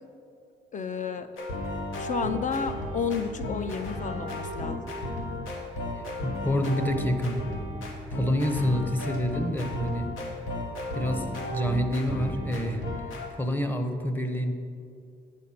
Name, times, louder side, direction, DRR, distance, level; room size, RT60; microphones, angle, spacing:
voice 1, 0.7-1.3 2.0-4.9, left 6 dB, 40° left, 10 dB, 0.5 m, -31 dB
sound 1, 1.4-13.3, left 1 dB, 85° left, 1.1 m, -34 dB
voice 2, 6.2-7.4 8.1-10.1 10.9-12.9 13.1-14.5, equal, 10° left, 6 dB, 0.8 m, -27 dB
8.9 x 4.3 x 5.7 m, 2.4 s
cardioid pair, 90°, 20 cm